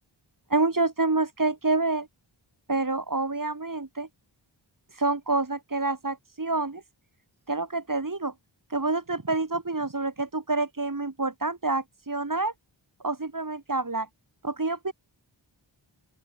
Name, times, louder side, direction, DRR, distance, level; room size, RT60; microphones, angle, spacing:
voice 1, 0.5-2.1 2.7-4.1 4.9-6.8 7.5-8.3 8.7-12.5 13.0-14.1 14.4-14.9, right 3 dB, 45° right, 5.2 m, -27 dB
open air
cardioid pair, 40°, 47 cm